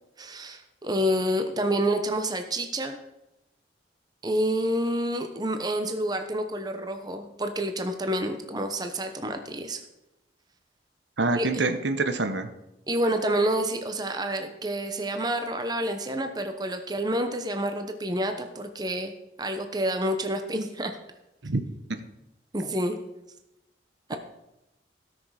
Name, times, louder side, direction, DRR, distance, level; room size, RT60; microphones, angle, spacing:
voice 1, 0.2-3.0 4.2-9.8 11.3-11.5 12.9-19.1 19.4-20.9 22.5-23.0 24.1-24.2, right 1 dB, 20° right, 6 dB, 0.9 m, -28 dB
voice 2, 11.2-12.5 21.4-21.6, right 3 dB, 75° right, 8 dB, 1.0 m, -26 dB
17.0 x 6.4 x 4.9 m, 0.92 s
head